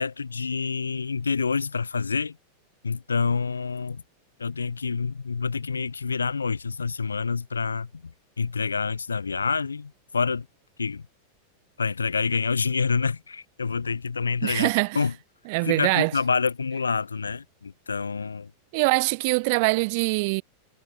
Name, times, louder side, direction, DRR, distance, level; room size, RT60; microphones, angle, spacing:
voice 1, 0.0-2.4 2.8-4.0 4.4-8.1 8.4-10.5 10.8-11.0 11.8-14.7 14.9-15.1 15.6-18.5, left 5 dB, 75° left, 1.2 m, -27 dB
voice 2, 14.4-15.0 15.5-16.1 18.7-20.4, right 28 dB, 45° right, 0.9 m, -23 dB
figure-of-eight pair, 90°, 0 cm